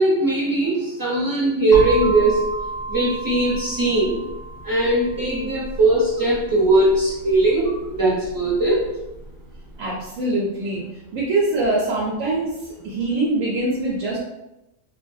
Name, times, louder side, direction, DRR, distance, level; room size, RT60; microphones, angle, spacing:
voice 1, 0.0-2.4 2.9-4.2 4.6-8.9, right 2 dB, 30° right, -6 dB, 0.3 m, -19 dB
sound 1, 1.7-9.5, right 3 dB, 60° left, 0.4 m, -32 dB
voice 2, 9.8-10.8 11.1-14.2, right 2 dB, 85° right, -5 dB, 1.0 m, -23 dB
2.5 x 2.3 x 2.6 m, 0.92 s
omnidirectional pair, 1.4 m